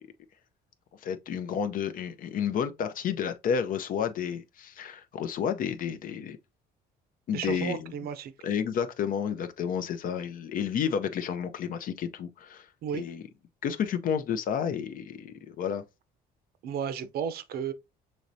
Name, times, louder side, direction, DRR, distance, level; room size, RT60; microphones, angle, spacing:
voice 1, 1.0-6.4 7.3-7.9 8.4-12.7 12.9-13.2 13.6-15.8, left 7 dB, 55° left, 0.5 m, -31 dB
voice 2, 7.3-8.3 12.8-13.1 16.6-17.7, right 8 dB, 65° right, 0.6 m, -33 dB
6.3 x 3.1 x 2.6 m
cardioid pair, 110°, 17 cm